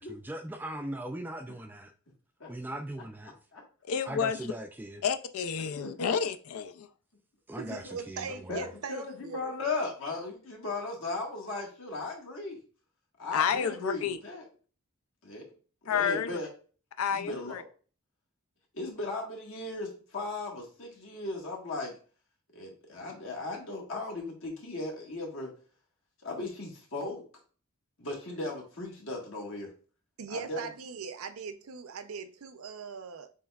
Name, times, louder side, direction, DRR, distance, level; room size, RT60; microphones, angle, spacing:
voice 1, 0.0-1.9 2.5-3.4 4.1-5.0 7.5-8.6, right 1 dB, 10° right, 0.3 m, -39 dB
voice 2, 3.9-4.4 5.0-6.9 13.3-14.2 15.9-16.4 17.0-17.6, left 7 dB, 80° left, 0.4 m, -30 dB
voice 3, 5.8-6.1 7.7-7.9 8.5-12.6 13.2-14.4 15.2-15.4 15.8-16.5 17.1-17.6 18.7-21.9 22.5-25.5 26.2-27.2 28.0-29.7 30.3-30.6, left 2 dB, 65° left, 1.6 m, -37 dB
voice 4, 7.6-9.6 30.2-33.3, right 5 dB, 85° right, 0.6 m, -40 dB
7.3 x 3.1 x 2.3 m
head